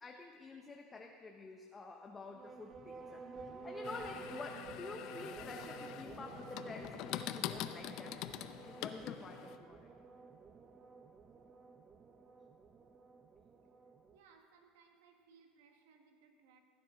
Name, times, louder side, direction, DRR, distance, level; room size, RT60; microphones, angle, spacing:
voice 1, 0.0-8.2 8.7-9.9, left 3 dB, 20° left, 2 dB, 0.7 m, -49 dB
sound 1, 2.3-14.2, right 4 dB, 25° right, 0.7 m, -51 dB
sound 2, 3.8-9.6, left 12 dB, 60° left, 0.5 m, -45 dB
voice 2, 14.1-16.6, right 5 dB, 85° right, 4 dB, 1.5 m, -65 dB
15.5 x 9.8 x 3.8 m, 2.1 s
supercardioid pair, 125°, 0 cm